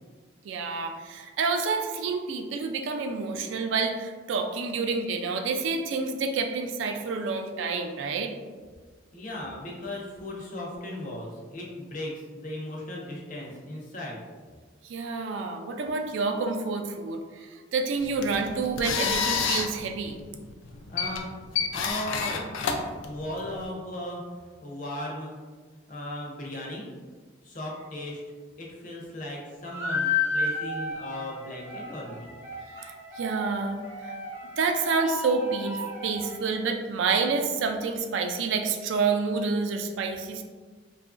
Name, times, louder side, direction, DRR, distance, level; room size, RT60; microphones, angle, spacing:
voice 1, 0.4-8.3 14.8-20.2 32.8-33.8 34.6-40.4, right 4 dB, 75° right, 4 dB, 0.3 m, -28 dB
voice 2, 9.1-14.2 20.9-21.3 21.7-22.8 23.0-25.3 25.9-26.9 27.4-28.2 28.6-32.3, left 1 dB, 40° left, -2 dB, 0.6 m, -37 dB
sound 1, 18.0-23.6, left 6 dB, 85° left, 0.3 m, -30 dB
sound 2, 29.6-36.7, left 4 dB, 10° right, 0.4 m, -33 dB
2.8 x 2.4 x 2.4 m, 1.5 s
head